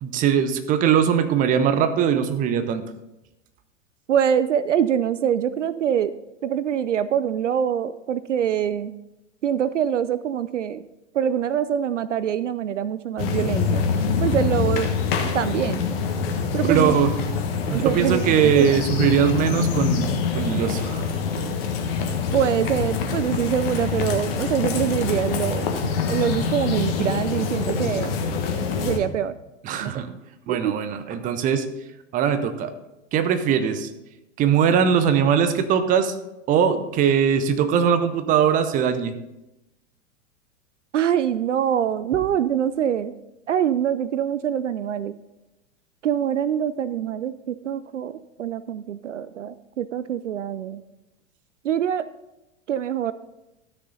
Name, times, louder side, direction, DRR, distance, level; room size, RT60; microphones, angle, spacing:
voice 1, 0.0-2.8 16.7-17.1 17.6-20.1 20.3-21.0 29.6-30.1 30.5-31.7 32.1-32.7 33.1-33.9 34.4-36.1 36.5-39.1, right 8 dB, 20° right, 11 dB, 0.7 m, -21 dB
voice 2, 4.1-6.1 6.4-8.9 9.4-10.8 11.1-13.9 14.2-14.9 15.3-15.8 16.5-17.0 17.7-18.7 22.3-25.7 26.1-28.2 28.8-29.3 29.8-30.2 30.5-30.8 40.9-43.1 43.5-45.1 46.0-50.8 51.6-52.1 52.7-53.1, right 9 dB, 70° right, 16 dB, 0.5 m, -24 dB
sound 1, 13.2-29.0, left 5 dB, 50° left, 1.4 m, -25 dB
13.0 x 6.5 x 4.0 m, 0.95 s
figure-of-eight pair, 95°, 38 cm